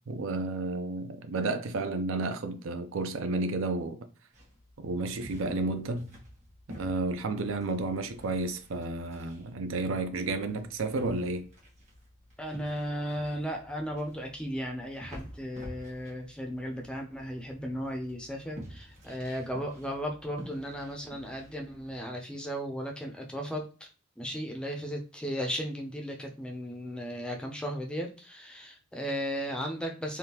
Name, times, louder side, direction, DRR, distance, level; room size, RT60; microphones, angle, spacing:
voice 1, 0.1-4.0 4.8-6.1 6.7-11.5, right 3 dB, 65° right, 0.4 m, -32 dB
sound 1, 4.3-22.0, equal, 35° right, 1.2 m, -50 dB
voice 2, 12.4-23.9 24.2-30.2, equal, 5° left, 0.5 m, -35 dB
3.5 x 2.3 x 2.8 m
head